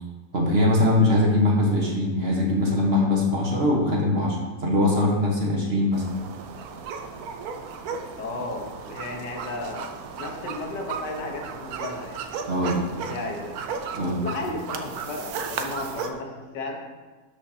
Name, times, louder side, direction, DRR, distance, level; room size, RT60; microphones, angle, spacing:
voice 1, 0.3-6.0 12.5-12.8 13.9-14.2, left 1 dB, 40° right, -1 dB, 1.3 m, -22 dB
sound 1, 5.9-16.1, right 5 dB, 70° right, 1.0 m, -35 dB
voice 2, 8.2-12.2 12.6-13.6 14.2-16.8, left 2 dB, 80° left, 1 dB, 1.7 m, -34 dB
12.5 x 5.1 x 2.8 m, 1.3 s
omnidirectional pair, 1.8 m